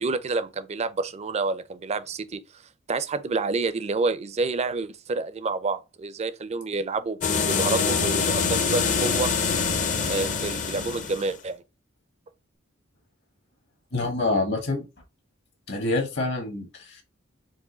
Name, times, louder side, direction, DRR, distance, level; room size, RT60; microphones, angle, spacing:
voice 1, 0.0-2.4 2.9-7.2 7.5-9.3 10.1-11.6, right 3 dB, 30° right, 0.4 m, -28 dB
sound 1, 7.2-11.3, left 5 dB, 40° left, 0.6 m, -25 dB
voice 2, 13.9-14.8 15.7-17.0, left 2 dB, 60° left, 1.3 m, -26 dB
4.8 x 2.6 x 3.8 m
head